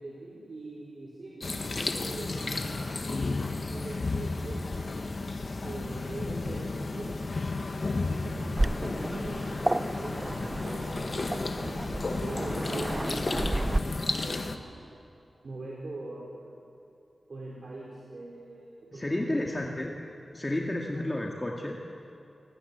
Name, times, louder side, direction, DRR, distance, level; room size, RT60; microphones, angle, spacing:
voice 1, 0.0-4.8 5.6-7.3 7.9-14.8 15.4-16.5 17.3-19.6 20.7-21.0, right 2 dB, 60° right, -4 dB, 4.5 m, -42 dB
sound 1, 1.4-14.6, left 3 dB, 55° left, 1.5 m, -33 dB
Waves surf, 8.6-13.8, right 1 dB, 20° right, 0.7 m, -32 dB
voice 2, 18.9-19.9 20.3-21.8, left 1 dB, 20° left, 0 dB, 2.1 m, -31 dB
28.0 x 20.0 x 8.3 m, 2.7 s
wide cardioid pair, 85°, 0 cm